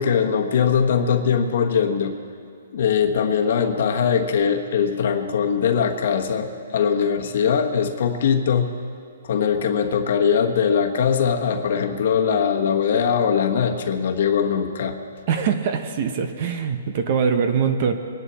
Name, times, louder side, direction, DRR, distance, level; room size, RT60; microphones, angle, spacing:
voice 1, 0.0-2.1 2.7-8.8 9.2-14.9, left 7 dB, 55° left, 5 dB, 1.3 m, -21 dB
voice 2, 15.3-17.9, right 6 dB, 40° right, 7 dB, 0.9 m, -22 dB
23.5 x 10.5 x 4.2 m, 2.4 s
hypercardioid pair, 160°, 0 cm